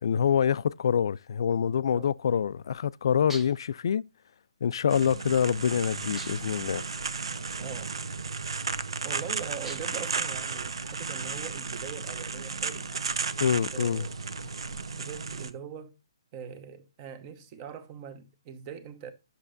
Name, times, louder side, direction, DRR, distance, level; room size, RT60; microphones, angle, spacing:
voice 1, 0.0-4.0 4.6-6.8 13.4-14.1, left 8 dB, 60° left, 0.3 m, -26 dB
sound 1, 3.3-3.7 6.2-6.6 9.6-10.1, right 1 dB, 5° right, 0.7 m, -44 dB
sound 2, 4.9-15.5, right 4 dB, 75° right, 0.7 m, -34 dB
voice 2, 7.6-8.0 9.0-13.1 13.7-15.9 16.3-19.1, right 7 dB, 25° right, 1.0 m, -42 dB
9.8 x 6.7 x 2.5 m
hypercardioid pair, 155°, 3 cm